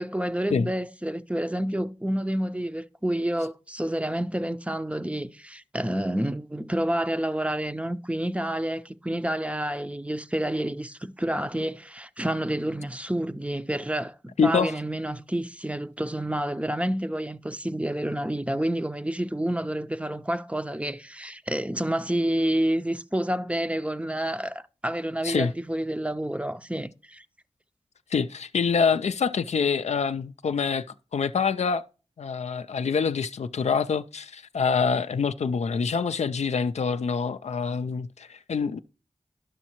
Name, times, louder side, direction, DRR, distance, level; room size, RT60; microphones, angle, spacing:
voice 1, 0.0-27.2, right 1 dB, 10° right, 0.5 m, -29 dB
voice 2, 14.4-14.7 25.2-25.5 28.1-30.9 31.1-31.8 32.2-38.8, left 5 dB, 80° left, 0.4 m, -25 dB
11.0 x 6.2 x 2.9 m
cardioid pair, 40°, 11 cm